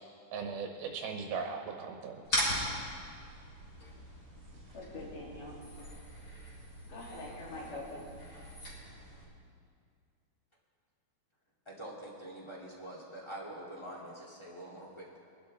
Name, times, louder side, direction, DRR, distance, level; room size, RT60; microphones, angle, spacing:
voice 1, 0.3-2.4, right 5 dB, 85° right, 2 dB, 2.9 m, -38 dB
sound 1, 2.2-9.2, equal, 35° left, 5.0 m, -39 dB
voice 2, 4.7-5.6 6.9-8.1, left 2 dB, 60° left, -5 dB, 4.2 m, -44 dB
voice 3, 11.7-15.2, right 1 dB, 10° left, -5 dB, 1.8 m, -45 dB
24.0 x 12.0 x 3.4 m, 2.3 s
omnidirectional pair, 4.3 m